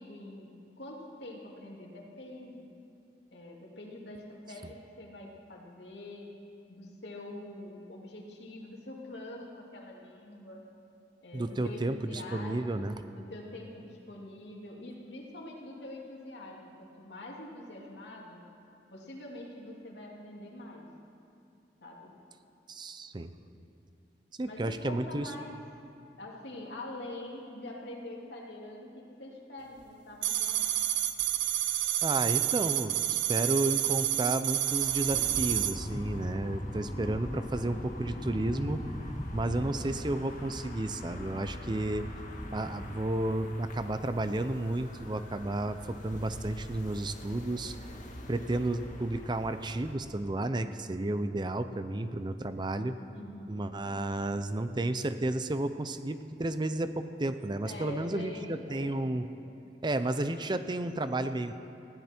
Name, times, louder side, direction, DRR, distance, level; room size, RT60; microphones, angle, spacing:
voice 1, 0.0-2.7 3.3-6.3 6.7-10.7 11.2-12.8 13.1-18.5 18.9-20.9 21.8-22.1 24.5-25.6 26.2-30.6 53.1-53.6 57.7-59.0 59.4-59.5, left 1 dB, 75° left, -1 dB, 2.6 m, -45 dB
voice 2, 11.3-13.0 22.7-23.3 24.4-25.3 32.0-38.8 39.3-42.1 42.5-47.8 48.3-53.0 53.5-59.3 59.8-61.6, right 2 dB, 25° right, 10 dB, 0.6 m, -32 dB
sound 1, 30.2-35.7, right 13 dB, 90° right, 0.7 m, -29 dB
sound 2, 34.6-49.9, left 1 dB, 45° left, 1.7 m, -46 dB
sound 3, 35.1-43.0, left 1 dB, 20° left, 0.8 m, -40 dB
20.0 x 15.5 x 4.4 m, 2.6 s
head